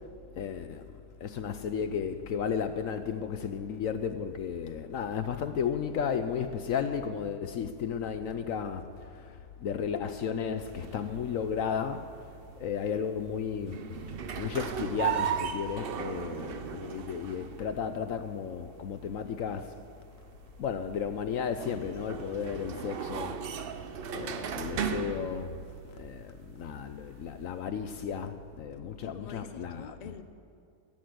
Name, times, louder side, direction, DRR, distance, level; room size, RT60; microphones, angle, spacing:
voice 1, 0.4-0.8 1.2-8.8 9.2-9.3 9.6-12.0 12.6-13.8 14.4-19.7 20.6-23.4 24.1-25.6 26.0-29.9, left 7 dB, 65° left, 0.9 m, -33 dB
sound 1, 10.6-27.6, right 7 dB, 60° right, 0.6 m, -38 dB
voice 2, 29.0-30.2, left 6 dB, 40° left, 0.5 m, -46 dB
16.0 x 9.4 x 7.8 m
omnidirectional pair, 1.8 m